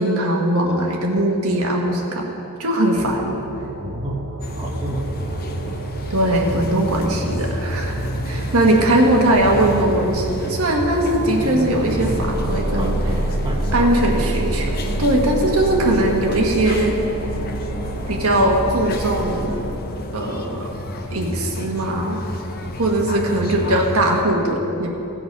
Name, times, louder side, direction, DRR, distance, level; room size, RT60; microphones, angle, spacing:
voice 1, 0.0-2.3 2.6-3.4 6.1-8.0 8.2-13.0 13.7-16.9 18.1-19.6 20.1-20.7 21.1-22.2 22.8-24.9, right 1 dB, 75° right, 0 dB, 1.4 m, -20 dB
sound 1, 2.9-19.8, right 2 dB, 50° right, 0.8 m, -28 dB
voice 2, 3.8-4.2 4.6-5.4 12.8-13.9 23.2-23.3, equal, 20° right, -2 dB, 1.1 m, -32 dB
sound 2, 4.4-24.2, left 1 dB, 45° left, 0.7 m, -30 dB
16.5 x 6.0 x 5.3 m, 2.8 s
head